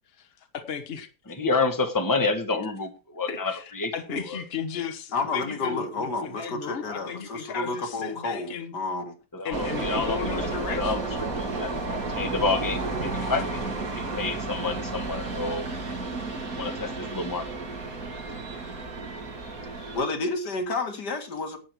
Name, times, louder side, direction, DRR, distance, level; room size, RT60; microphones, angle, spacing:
voice 1, 0.2-1.4 3.3-8.7 9.4-11.0 13.2-13.4, left 6 dB, 40° left, 8 dB, 1.4 m, -35 dB
voice 2, 1.3-3.9 4.3-4.4 9.3-10.4 10.8-11.1 11.4-13.5 14.1-15.6 16.5-17.4, left 3 dB, 10° left, 6 dB, 1.5 m, -28 dB
voice 3, 5.1-9.1 19.9-21.6, left 3 dB, 80° left, 4 dB, 2.6 m, -30 dB
sound 1, 9.5-20.0, right 3 dB, 60° right, 2.7 m, -32 dB
11.5 x 8.8 x 4.7 m, 0.32 s
omnidirectional pair, 1.7 m